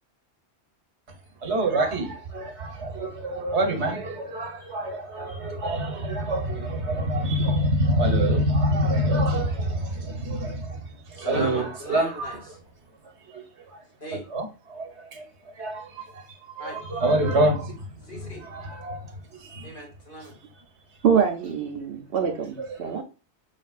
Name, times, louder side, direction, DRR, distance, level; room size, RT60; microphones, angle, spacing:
voice 1, 1.4-10.8 11.1-11.6 11.9-12.3 13.3-13.4 14.3-15.2 15.6-16.2 16.6-17.7 18.4-19.1 19.4-19.7 22.9-23.0, right 1 dB, 75° right, 1.3 m, -26 dB
voice 2, 11.1-12.6 14.0-14.3 16.6-16.8 18.0-18.5 19.6-20.4, equal, 50° left, 1.7 m, -37 dB
voice 3, 21.0-23.0, right 7 dB, 60° right, 0.8 m, -24 dB
5.1 x 3.2 x 2.3 m
omnidirectional pair, 1.2 m